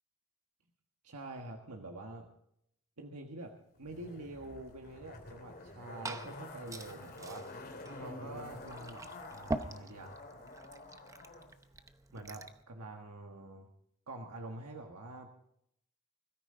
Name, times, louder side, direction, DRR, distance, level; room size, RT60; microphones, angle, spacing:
voice 1, 1.0-2.3 3.0-7.5 7.9-10.2 12.1-13.7 14.1-15.3, right 2 dB, 80° right, 2 dB, 1.5 m, -46 dB
Zipper (clothing), 3.8-11.5 11.8-11.9, left 2 dB, 45° left, 2.7 m, -49 dB
Glass / Fill (with liquid), 5.5-12.6, right 2 dB, 15° right, 0.8 m, -44 dB
21.0 x 13.5 x 3.9 m, 0.72 s
head